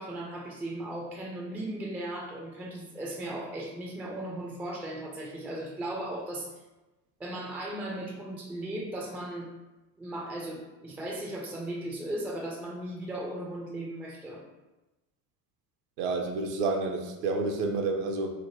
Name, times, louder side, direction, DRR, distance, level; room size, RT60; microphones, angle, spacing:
voice 1, 0.0-6.5 7.2-9.5 10.0-14.4, right 1 dB, 5° right, -2 dB, 0.3 m, -37 dB
voice 2, 16.0-18.3, right 3 dB, 65° right, 3 dB, 0.7 m, -29 dB
3.3 x 2.1 x 2.9 m, 1.1 s
figure-of-eight pair, 60°, 49 cm